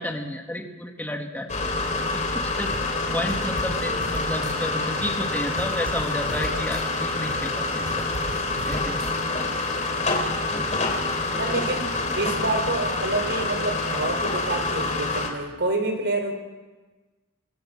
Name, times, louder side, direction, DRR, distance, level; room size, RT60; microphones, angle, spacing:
voice 1, 0.0-1.5 1.9-2.7 3.1-8.1 8.7-9.1 10.5-10.7, left 1 dB, 10° left, 2 dB, 2.2 m, -32 dB
sound 1, 1.5-15.3, left 3 dB, 35° left, 3.3 m, -27 dB
sound 2, 2.7-9.6, right 1 dB, 75° right, 6.1 m, -38 dB
voice 2, 11.3-11.9 12.2-16.3, right 2 dB, 55° right, 5 dB, 4.2 m, -27 dB
25.5 x 18.0 x 7.5 m, 1.2 s
head